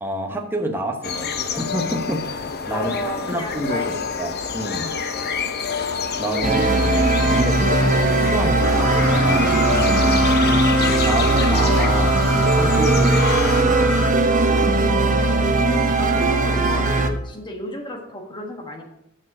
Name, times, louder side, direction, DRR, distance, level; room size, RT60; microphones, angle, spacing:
voice 1, 0.0-2.9 3.3-3.9 4.2-4.9 6.2-9.7 11.1-15.5, right 1 dB, 10° right, 2 dB, 1.0 m, -29 dB
sound 1, 1.0-13.6, left 6 dB, 45° left, 0.7 m, -27 dB
voice 2, 2.7-4.0 10.0-10.6 16.0-18.8, left 1 dB, 20° left, 3 dB, 1.3 m, -33 dB
sound 2, 6.4-17.1, right 2 dB, 35° right, 0.7 m, -18 dB
sound 3, 8.6-14.1, left 4 dB, 80° left, 1.1 m, -30 dB
7.3 x 6.4 x 6.1 m, 0.84 s
head